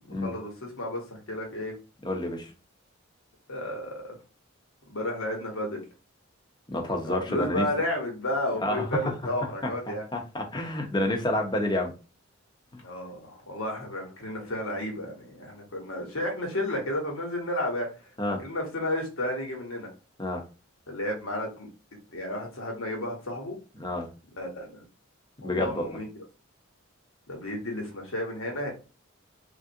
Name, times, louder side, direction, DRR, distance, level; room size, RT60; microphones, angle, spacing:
voice 1, 0.1-1.7 3.5-4.2 4.9-5.8 7.1-10.1 12.8-18.1 18.4-19.9 20.9-21.7 22.1-23.6 24.4-24.8 25.4-26.1 27.3-28.7, left 1 dB, 75° left, 1 dB, 1.1 m, -32 dB
voice 2, 2.0-2.5 6.7-7.7 8.6-9.1 9.9-11.9 18.2-18.4 20.2-20.4 23.8-24.1 25.4-26.0, left 1 dB, 20° left, 3 dB, 0.6 m, -29 dB
3.3 x 2.5 x 2.6 m, 0.33 s
head